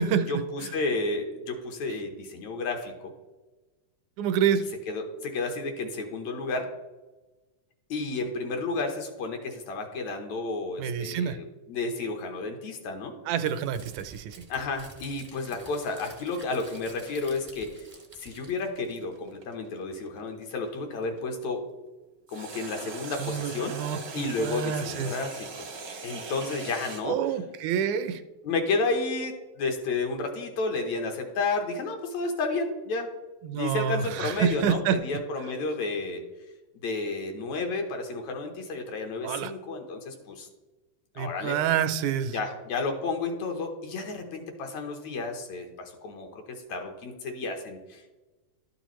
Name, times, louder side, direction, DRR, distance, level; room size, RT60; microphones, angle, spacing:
voice 1, 0.3-3.1 4.9-6.7 7.9-13.1 14.5-17.8 18.2-21.6 22.3-23.7 24.1-25.6 26.0-27.2 28.4-33.1 33.5-36.2 36.8-40.5 41.2-41.6 42.3-46.4 46.7-48.1, left 3 dB, 70° left, 3 dB, 2.2 m, -31 dB
voice 2, 4.2-4.6 10.8-11.4 13.3-14.4 23.2-25.1 27.1-28.2 33.4-35.0 39.2-39.5 41.2-42.4, right 8 dB, 80° right, 10 dB, 1.9 m, -27 dB
Crumpling crinkling, 13.4-19.3, right 3 dB, 30° right, 0.5 m, -51 dB
sound 1, 16.0-21.2 22.3-27.0, right 4 dB, 60° right, 0.9 m, -41 dB
12.0 x 6.8 x 3.1 m, 1.2 s
omnidirectional pair, 3.5 m